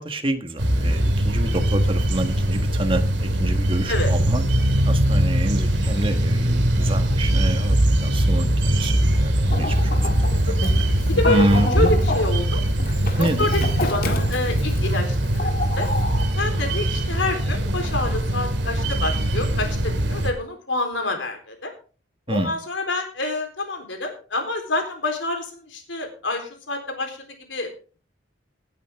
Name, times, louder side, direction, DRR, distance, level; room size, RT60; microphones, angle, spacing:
voice 1, 0.0-4.4 4.8-8.9 9.2-9.9 10.2-10.7 11.3-11.9 13.2-13.5 22.3-22.5, right 1 dB, 30° right, 6 dB, 1.6 m, -27 dB
sound 1, 0.6-20.3, right 1 dB, 70° right, 2.4 m, -21 dB
Chicken rooster, 9.5-16.2, left 2 dB, 50° left, 2.0 m, -31 dB
voice 2, 11.0-11.5 11.7-12.6 13.2-15.9 16.4-21.7 22.3-27.7, left 2 dB, 80° left, 4 dB, 4.0 m, -27 dB
18.0 x 9.2 x 3.7 m, 0.38 s
head